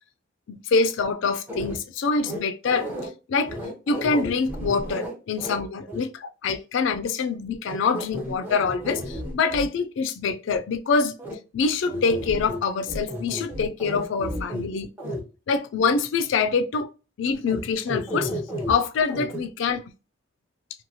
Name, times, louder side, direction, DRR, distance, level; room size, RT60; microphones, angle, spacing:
voice 1, 0.5-2.9 3.3-3.6 3.9-11.2 11.5-14.9 15.5-16.9 17.2-18.3 18.7-19.8, left 4 dB, 60° left, 0.3 m, -25 dB
sound 1, 1.5-1.8 2.2-3.1 3.5-5.6 5.9-6.0 7.7-9.7 11.2-11.3 11.9-12.6 12.9-14.7 15.0-15.2 17.5-17.6 17.9-18.7 19.1-19.4, equal, 10° right, 0.6 m, -32 dB
3.0 x 2.2 x 2.7 m
head